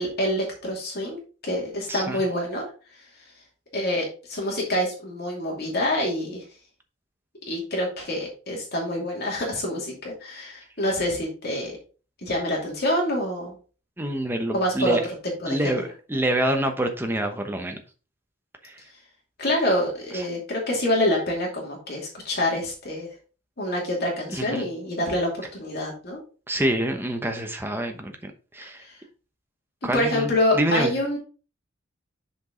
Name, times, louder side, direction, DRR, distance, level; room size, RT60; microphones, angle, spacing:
voice 1, 0.0-2.7 3.7-6.4 7.5-11.8 12.2-13.5 14.5-15.0 15.4-15.8 19.4-23.1 23.6-26.2 28.8-29.0 29.8-31.2, left 1 dB, 50° left, 2.6 m, -26 dB
voice 2, 1.9-2.2 14.0-15.0 15.5-17.8 18.6-18.8 20.1-20.2 24.3-24.6 26.5-28.8 29.8-30.9, right 1 dB, 10° right, 1.0 m, -26 dB
6.9 x 5.3 x 3.9 m
head